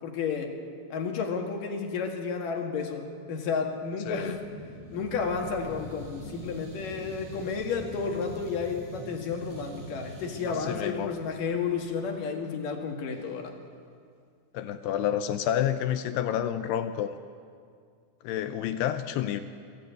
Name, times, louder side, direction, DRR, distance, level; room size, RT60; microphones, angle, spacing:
voice 1, 0.0-0.5 0.9-4.4 4.9-13.5, left 5 dB, 55° left, 3 dB, 3.0 m, -32 dB
voice 2, 4.1-4.4 10.5-11.1 14.5-17.2 18.2-19.4, left 10 dB, 80° left, 9 dB, 2.6 m, -29 dB
sound 1, 4.1-12.1, equal, 40° right, 8.4 m, -44 dB
25.5 x 15.5 x 8.3 m, 2.2 s
omnidirectional pair, 5.2 m